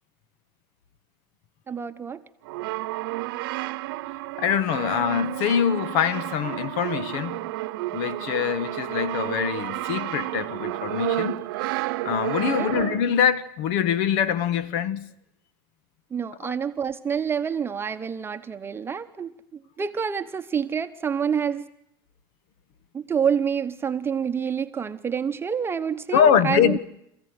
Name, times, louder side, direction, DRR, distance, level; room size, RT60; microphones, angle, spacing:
voice 1, 1.7-2.2 12.5-12.8 16.1-21.7 22.9-26.8, right 7 dB, 20° right, 1.0 m, -28 dB
Brass instrument, 2.4-13.3, right 18 dB, 80° right, 0.9 m, -31 dB
voice 2, 4.4-7.5 7.9-11.5 12.0-15.1 26.1-26.8, left 8 dB, 65° left, 1.4 m, -24 dB
28.0 x 15.0 x 9.6 m
supercardioid pair, 125°, 12 cm